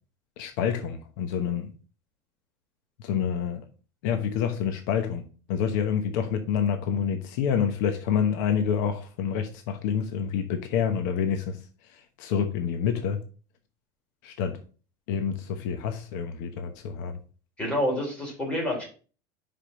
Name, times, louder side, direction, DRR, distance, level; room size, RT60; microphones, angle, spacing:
voice 1, 0.4-1.7 3.0-3.7 4.0-11.6 12.2-13.2 14.2-14.6 15.1-17.2, left 7 dB, 70° left, 1.1 m, -27 dB
voice 2, 17.6-18.9, left 1 dB, 10° left, 3.5 m, -28 dB
5.8 x 5.1 x 5.7 m
cardioid pair, 175°, 10 cm